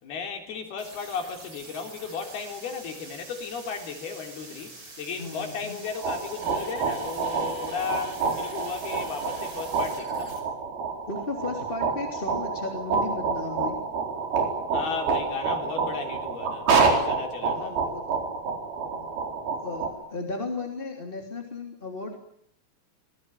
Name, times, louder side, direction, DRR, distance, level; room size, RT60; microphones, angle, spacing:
voice 1, 0.0-10.4 14.7-17.8, left 6 dB, 60° left, 5.3 m, -35 dB
sound 1, 0.8-10.4, right 2 dB, 25° right, 6.2 m, -45 dB
voice 2, 5.2-5.8 11.1-13.8 17.5-18.0 18.9-19.1 19.6-22.2, left 3 dB, 15° left, 2.7 m, -35 dB
sound 2, 5.9-19.9, right 5 dB, 60° right, 6.1 m, -28 dB
25.5 x 20.5 x 9.1 m
omnidirectional pair, 5.1 m